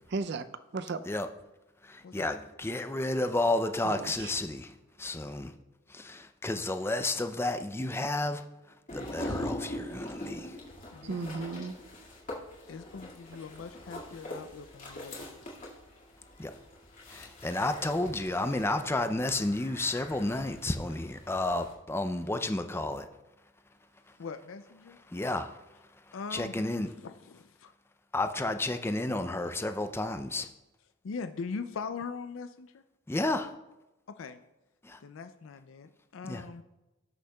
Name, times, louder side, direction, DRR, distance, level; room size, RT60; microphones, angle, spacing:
voice 1, 0.1-0.5 0.7-1.0 3.8-4.3 10.0-10.1 11.0-11.9, right 3 dB, 55° right, 0.4 m, -35 dB
voice 2, 1.8-5.5 5.9-8.4 8.9-10.6 16.4-16.5 17.1-23.1 25.1-25.6 26.3-26.9 28.1-30.5 33.1-33.5 34.8-35.0 36.2-36.4, left 2 dB, 10° left, 0.4 m, -31 dB
sound 1, 8.9-21.7, left 1 dB, 40° left, 2.1 m, -43 dB
voice 3, 10.9-11.2 12.7-15.2 24.2-25.0 26.1-27.7 31.0-32.8 34.1-34.4 35.0-36.6, left 5 dB, 70° left, 0.4 m, -41 dB
18.0 x 6.4 x 2.3 m
head